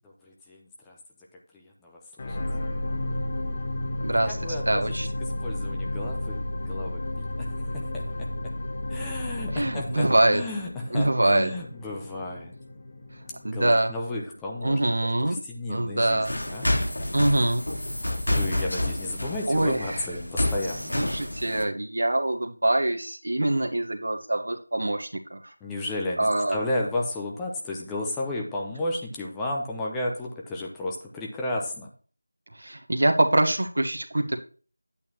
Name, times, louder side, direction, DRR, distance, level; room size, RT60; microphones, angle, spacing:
voice 1, 0.3-0.6 0.9-1.0 1.9-2.0 2.3-2.4 4.3-4.8 5.4-7.0 7.4-7.5 7.7-8.0 8.9-12.5 13.5-14.8 15.2-16.7 18.3-20.9 25.6-31.9, left 2 dB, 5° left, -2 dB, 0.7 m, -32 dB
sound 1, 2.2-14.6 15.2-15.3, left 1 dB, 25° left, 0.9 m, -33 dB
voice 2, 4.0-4.4 4.7-5.1 9.5-10.4 10.9-11.5 13.4-13.9 14.6-15.4 15.7-16.3 17.1-17.6 19.5-20.1 20.9-25.4 26.2-26.6 32.6-34.4, right 1 dB, 60° right, 6 dB, 1.1 m, -24 dB
sound 2, 16.2-21.6, left 1 dB, 70° left, 3.4 m, -29 dB
10.5 x 8.4 x 2.9 m, 0.39 s
figure-of-eight pair, 170°, 0 cm